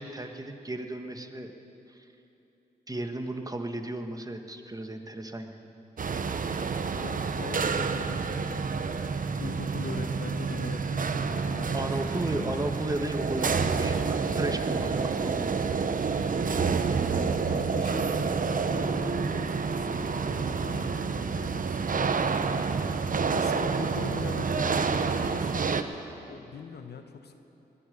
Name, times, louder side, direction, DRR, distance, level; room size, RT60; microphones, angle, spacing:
voice 1, 0.0-1.5 1.9-2.0 2.9-5.6 9.5-9.6 11.7-15.6, right 1 dB, 20° right, 6 dB, 1.4 m, -34 dB
sound 1, 6.0-25.8, right 5 dB, 50° right, 0.9 m, -28 dB
voice 2, 6.9-8.9 9.4-12.5 13.8-15.1 16.8-22.7 23.3-25.8 26.3-27.4, left 6 dB, 70° left, 7 dB, 1.1 m, -42 dB
20.0 x 10.0 x 6.8 m, 2.9 s
cardioid pair, 50°, 17 cm